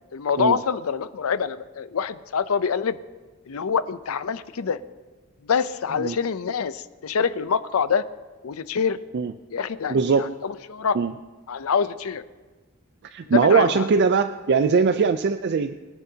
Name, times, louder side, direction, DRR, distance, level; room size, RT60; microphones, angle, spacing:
voice 1, 0.1-3.0 3.5-4.8 5.4-8.0 8.4-9.0 9.5-11.0 11.5-12.2 13.3-13.9, left 6 dB, 85° left, 14 dB, 0.5 m, -25 dB
voice 2, 9.9-10.3 10.9-11.1 13.0-15.7, right 5 dB, 50° right, 10 dB, 0.4 m, -21 dB
23.0 x 10.5 x 2.8 m, 1.3 s
head